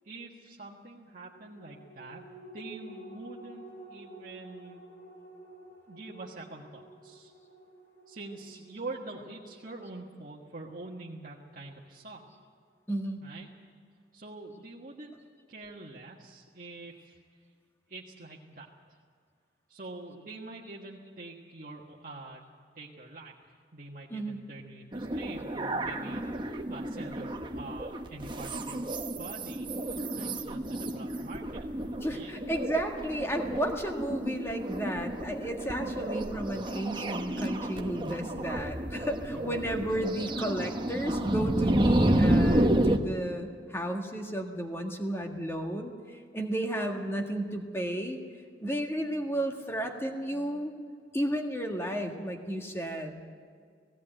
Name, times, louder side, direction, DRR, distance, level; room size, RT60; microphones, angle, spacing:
voice 1, 0.0-2.2 2.5-4.9 5.9-7.3 8.1-12.2 13.2-13.5 14.1-15.2 15.5-17.4 17.9-19.0 19.7-22.5 22.7-28.8 29.2-29.7 30.1-31.7 32.1-32.3 39.3-39.6, right 2 dB, 50° right, -4 dB, 1.5 m, -45 dB
sound 1, 1.1-11.9 12.3-12.4, right 1 dB, 75° left, 7.6 m, -51 dB
voice 2, 12.9-13.2 24.1-24.4 32.0-48.2 48.6-50.7 51.1-53.3, right 1 dB, 15° left, 3 dB, 1.7 m, -33 dB
sound 2, 24.9-43.0, right 1 dB, 25° right, 1.0 m, -30 dB
17.0 x 17.0 x 8.9 m, 2.1 s
head